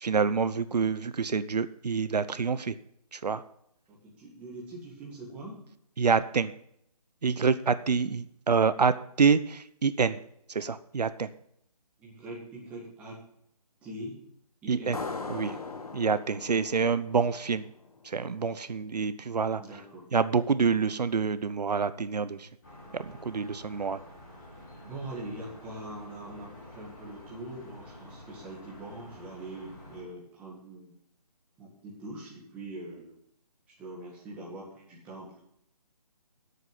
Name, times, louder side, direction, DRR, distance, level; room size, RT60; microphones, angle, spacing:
voice 1, 0.0-2.7 3.1-3.4 6.0-6.5 7.2-10.2 10.5-11.3 14.7-15.0 15.3-15.5 15.9-17.6 18.0-19.6 20.1-22.5 22.9-24.0, right 5 dB, 85° right, 14 dB, 0.8 m, -27 dB
voice 2, 3.9-5.6 12.0-13.2 13.8-14.2 14.6-15.0 15.3-15.6 19.6-20.1 24.8-31.0 31.6-33.2 33.8-35.4, right 1 dB, 5° right, -5 dB, 2.0 m, -43 dB
sound 1, 14.9-18.2, left 4 dB, 65° left, 1.7 m, -40 dB
sound 2, 22.6-30.0, left 1 dB, 30° left, 4.4 m, -49 dB
11.5 x 8.2 x 5.7 m, 0.72 s
hypercardioid pair, 175°, 20 cm